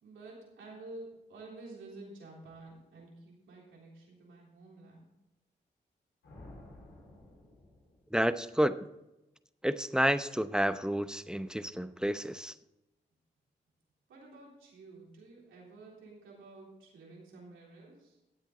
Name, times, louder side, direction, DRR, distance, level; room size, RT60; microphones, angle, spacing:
voice 1, 0.0-5.1 14.1-18.2, right 2 dB, 90° right, -3 dB, 3.6 m, -50 dB
sound 1, 6.2-8.5, left 1 dB, 80° left, 4.4 m, -53 dB
voice 2, 8.1-8.8 9.6-12.5, equal, 5° right, 12 dB, 0.8 m, -30 dB
15.0 x 8.3 x 3.9 m, 0.93 s
supercardioid pair, 45°, 20 cm